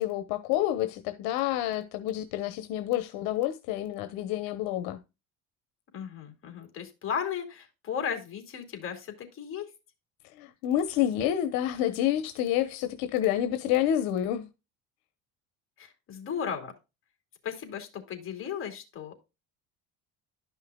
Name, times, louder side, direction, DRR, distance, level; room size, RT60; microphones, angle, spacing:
voice 1, 0.0-5.0 10.3-14.5, left 12 dB, 85° left, 1.1 m, -28 dB
voice 2, 5.9-9.7 15.8-16.7 17.4-19.1, left 7 dB, 40° left, 2.7 m, -35 dB
12.0 x 5.7 x 2.3 m
cardioid pair, 140°, 34 cm